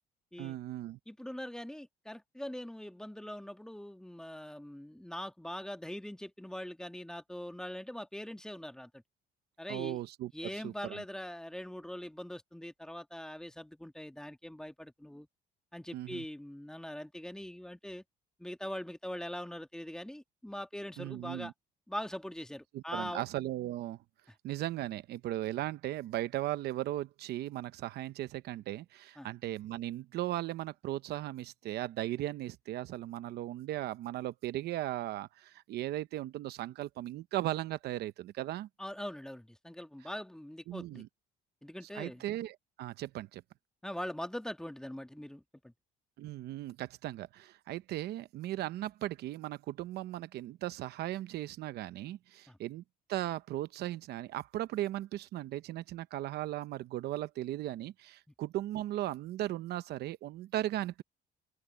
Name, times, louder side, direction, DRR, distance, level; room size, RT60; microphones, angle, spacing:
voice 1, 0.4-1.0 9.7-11.0 15.9-16.2 21.0-21.5 22.7-24.0 24.4-38.7 40.7-41.1 41.9-43.4 46.2-52.8 53.1-61.0, right 14 dB, 75° right, 0.8 m, -37 dB
voice 2, 1.1-9.0 9.6-10.0 10.3-15.3 15.7-18.0 18.4-21.5 21.9-23.2 29.2-29.3 38.8-41.0 41.6-42.2 43.8-45.7 52.5-52.6, left 1 dB, 5° left, 1.8 m, -42 dB
open air
cardioid pair, 110°, 17 cm